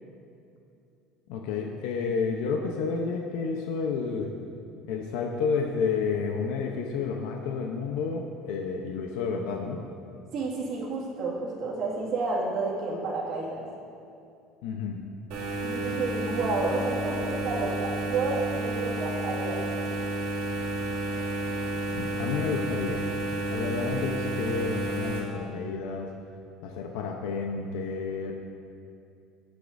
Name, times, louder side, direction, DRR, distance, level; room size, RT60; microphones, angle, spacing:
voice 1, 1.3-4.3 4.9-9.8 14.6-15.0 21.9-23.0 23.5-26.1 26.6-28.3, left 5 dB, 85° left, 1 dB, 0.8 m, -30 dB
voice 2, 10.3-13.7 15.6-19.9, right 3 dB, 45° right, -4 dB, 2.0 m, -30 dB
sound 1, 15.3-25.2, right 2 dB, 70° right, 2.4 m, -31 dB
18.5 x 8.3 x 2.7 m, 2.6 s
cardioid pair, 175°, 0 cm